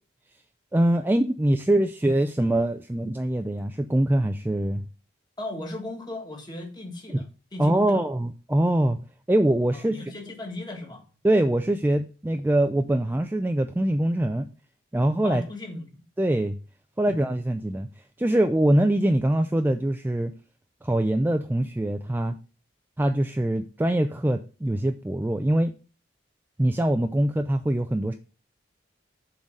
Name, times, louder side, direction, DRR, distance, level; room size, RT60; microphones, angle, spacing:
voice 1, 0.7-4.8 7.6-9.0 9.3-10.0 11.2-14.5 14.9-15.4 16.2-16.6 17.0-17.9 18.2-20.3 20.8-22.3 23.0-25.7 26.6-28.1, right 1 dB, 10° right, 0.3 m, -23 dB
voice 2, 5.4-8.1 9.7-11.0 15.2-15.9, left 2 dB, 20° left, 1.7 m, -37 dB
7.1 x 3.9 x 6.4 m
head